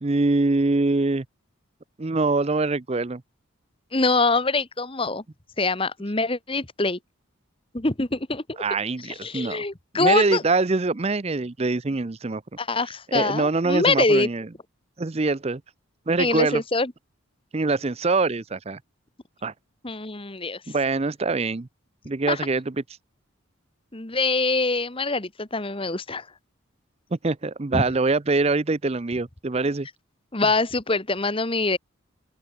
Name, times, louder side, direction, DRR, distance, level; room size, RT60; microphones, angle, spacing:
voice 1, 0.0-1.2 2.0-3.2 8.6-9.6 9.9-12.4 13.1-14.5 15.0-15.6 16.1-16.6 17.5-18.8 19.4-19.5 20.7-21.7 22.1-22.7 27.2-29.9, right 3 dB, 30° right, 0.6 m, -24 dB
voice 2, 3.9-5.2 5.6-7.0 7.7-8.6 9.2-10.4 12.6-14.3 16.2-16.9 19.8-20.6 22.3-22.5 23.9-26.3 27.7-27.8 30.3-31.8, left 3 dB, 25° left, 1.4 m, -24 dB
open air
head